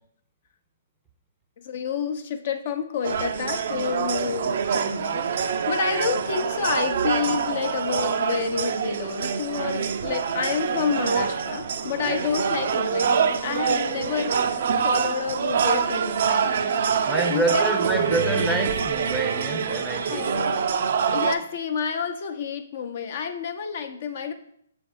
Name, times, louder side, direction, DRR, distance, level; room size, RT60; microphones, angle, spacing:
voice 1, 1.6-14.4 14.8-17.8 20.1-20.7 21.1-24.3, left 7 dB, 50° left, 7 dB, 0.7 m, -29 dB
sound 1, 3.0-21.4, right 6 dB, 60° right, 0.4 m, -25 dB
voice 2, 17.0-20.3, right 1 dB, 5° right, 5 dB, 0.6 m, -27 dB
6.7 x 3.3 x 4.2 m, 0.68 s
hypercardioid pair, 135°, 0 cm